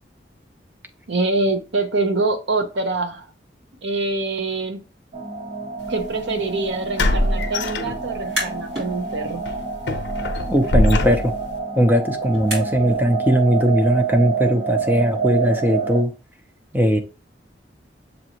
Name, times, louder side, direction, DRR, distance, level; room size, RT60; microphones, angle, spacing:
voice 1, 1.1-3.3 3.8-4.8 5.9-9.4, right 3 dB, 80° right, 0.7 m, -24 dB
sound 1, 5.1-16.0, right 5 dB, 40° right, 0.8 m, -28 dB
sound 2, 5.9-6.0 7.0-8.4 8.8-9.0 9.5-11.6, left 1 dB, 75° left, 0.6 m, -23 dB
sound 3, 8.2-8.9 9.3-13.0, equal, 55° right, 2.5 m, -34 dB
voice 2, 10.5-11.3 11.8-16.1 16.7-17.0, equal, 10° right, 0.5 m, -19 dB
6.7 x 2.7 x 2.9 m
head